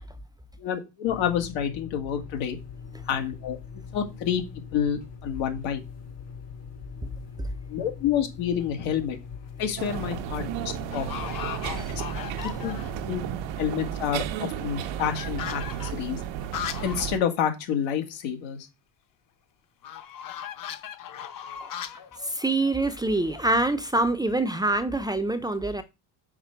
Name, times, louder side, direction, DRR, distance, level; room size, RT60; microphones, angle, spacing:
voice 1, 0.6-2.6 3.1-4.4 4.7-5.8 7.7-9.2 9.6-11.1 12.4-12.8 13.1-13.2 13.6-16.2 16.8-18.7, left 9 dB, 90° left, 1.8 m, -28 dB
sound 1, 1.0-13.4, left 6 dB, 65° left, 3.3 m, -42 dB
sound 2, 8.6-9.0 9.6-10.0 10.3-10.4 10.9-13.1 13.4-13.5 13.7-17.1 17.4-17.5 17.8-17.9 19.8-23.6, left 9 dB, 45° left, 0.9 m, -38 dB
sound 3, 9.8-17.2, right 10 dB, 85° right, 0.9 m, -33 dB
voice 2, 22.2-25.8, right 2 dB, 10° right, 0.5 m, -25 dB
5.9 x 4.3 x 5.7 m
cardioid pair, 135°, 44 cm